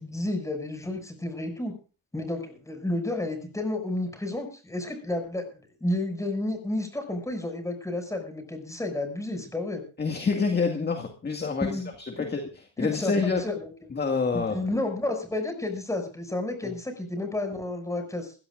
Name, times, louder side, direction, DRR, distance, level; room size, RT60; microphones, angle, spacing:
voice 1, 0.0-1.7 2.1-5.4 5.8-9.8 11.6-11.9 12.2-12.3 12.8-13.5 14.3-18.3, left 2 dB, 5° left, 5 dB, 6.6 m, -31 dB
voice 2, 10.0-13.5 13.9-14.6 16.6-16.7, left 4 dB, 20° left, 4 dB, 2.1 m, -27 dB
22.0 x 16.0 x 2.6 m, 0.36 s
supercardioid pair, 100°, 43 cm